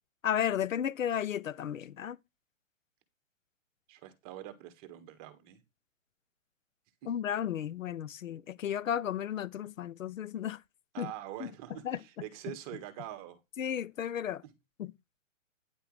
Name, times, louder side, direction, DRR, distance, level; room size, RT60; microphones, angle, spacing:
voice 1, 0.2-2.2 7.1-10.6 11.0-11.1 11.4-11.5 11.8-12.0 13.6-14.4 14.8-14.9, left 9 dB, 80° left, 0.8 m, -33 dB
voice 2, 3.9-5.6 7.0-7.1 10.9-13.4 14.4-14.5, right 13 dB, 30° right, 1.8 m, -44 dB
10.0 x 7.9 x 3.3 m
hypercardioid pair, 150°, 39 cm